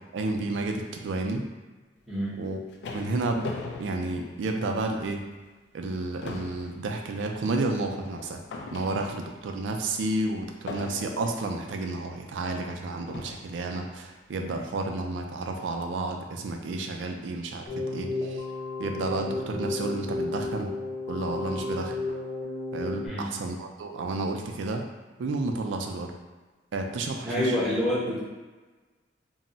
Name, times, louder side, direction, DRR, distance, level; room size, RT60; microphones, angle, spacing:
voice 1, 0.1-1.4 2.4-2.6 2.9-3.5 3.8-5.2 5.7-8.4 8.7-17.6 17.9-18.5 18.8-20.7 21.1-22.0 22.7-24.9 25.2-26.1 26.7-27.4, right 2 dB, 80° right, 3 dB, 0.4 m, -31 dB
voice 2, 2.1-2.4 23.0-23.4 27.2-28.2, left 1 dB, ahead, -9 dB, 0.7 m, -27 dB
sound 1, 2.3-5.0 5.4-5.6 5.9-9.4 10.7-11.4 12.3-12.4 13.1-13.6, left 3 dB, 65° left, 0.3 m, -40 dB
Keyboard (musical), 17.7-23.1, left 2 dB, 40° left, 0.7 m, -33 dB
2.2 x 2.0 x 3.8 m, 1.3 s
head